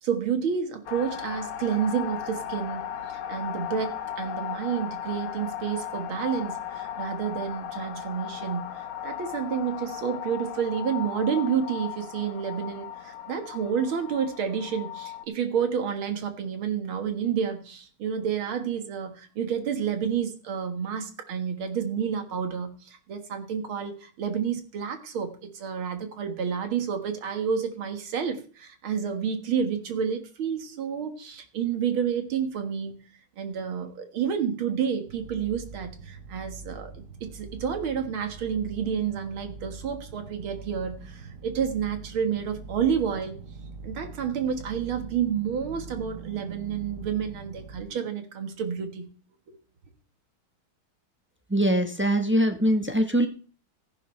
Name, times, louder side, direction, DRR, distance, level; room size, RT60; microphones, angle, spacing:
voice 1, 0.0-32.9 33.4-37.0 37.3-43.4 43.8-49.1 49.5-49.6, right 7 dB, 70° right, 7 dB, 2.4 m, -30 dB
sound 1, 0.9-15.2, left 10 dB, 85° left, 1.9 m, -36 dB
sound 2, 35.1-47.8, right 4 dB, 50° right, 1.1 m, -43 dB
voice 2, 51.5-53.3, equal, 15° right, 5 dB, 0.4 m, -22 dB
14.5 x 11.0 x 3.3 m, 0.40 s
omnidirectional pair, 2.3 m